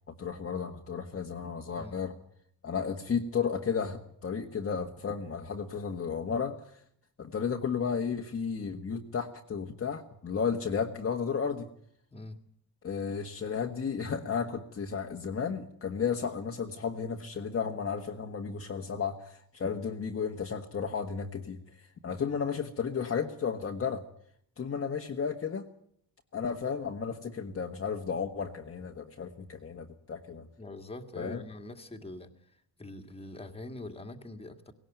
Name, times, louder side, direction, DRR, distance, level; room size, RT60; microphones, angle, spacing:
voice 1, 0.1-2.1 2.6-6.8 7.2-11.7 12.8-24.0 24.6-25.7 26.3-30.5 31.2-31.4, left 6 dB, 35° left, 2 dB, 1.5 m, -33 dB
voice 2, 30.6-34.7, left 2 dB, 15° left, 5 dB, 2.0 m, -44 dB
18.5 x 17.5 x 9.2 m, 0.67 s
cardioid pair, 125°, 40 cm